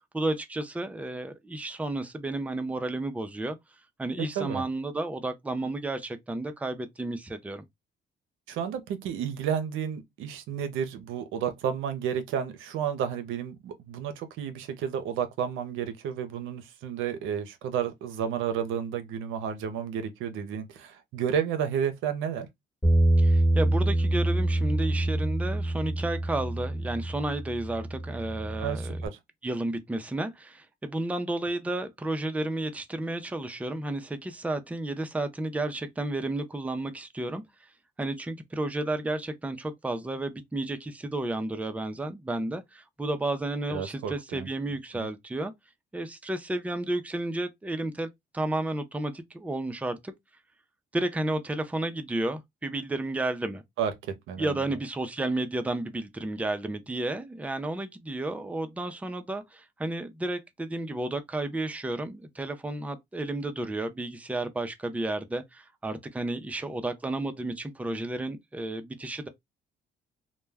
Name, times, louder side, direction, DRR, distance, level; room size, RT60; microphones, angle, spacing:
voice 1, 0.1-3.6 4.0-7.6 23.2-29.0 29.4-37.4 38.0-45.5 45.9-50.1 50.9-53.6 54.4-69.3, right 2 dB, 5° right, 0.4 m, -32 dB
voice 2, 8.5-22.5 28.6-29.1 43.7-44.5 44.9-45.1 53.8-54.5, right 8 dB, 85° right, 0.5 m, -31 dB
Bass guitar, 22.8-29.1, right 1 dB, 10° left, 1.3 m, -26 dB
2.2 x 2.1 x 3.2 m
cardioid pair, 90°, 20 cm